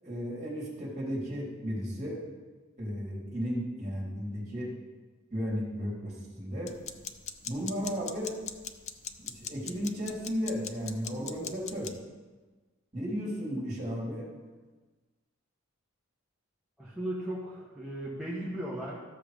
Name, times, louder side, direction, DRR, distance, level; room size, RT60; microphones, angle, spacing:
voice 1, 0.0-2.2 2.8-4.7 5.3-6.7 7.5-8.4 9.2-11.9 12.9-14.3, equal, 35° right, -5 dB, 3.6 m, -34 dB
sound 1, 6.7-12.0, left 8 dB, 35° left, 0.5 m, -41 dB
voice 2, 16.8-19.0, right 1 dB, 5° right, -7 dB, 1.4 m, -36 dB
14.0 x 7.0 x 5.2 m, 1.3 s
head